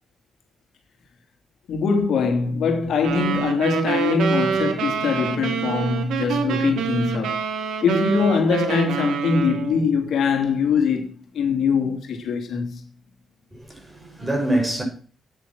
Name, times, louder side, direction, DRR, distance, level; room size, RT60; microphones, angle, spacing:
voice 1, 1.7-7.4 7.8-12.8, left 5 dB, 70° left, 2.8 m, -22 dB
sound 1, 3.0-9.8, right 7 dB, 85° right, 2.4 m, -26 dB
voice 2, 13.5-14.8, right 1 dB, 15° right, 6.8 m, -25 dB
9.9 x 9.6 x 6.2 m
cardioid pair, 85°, 0 cm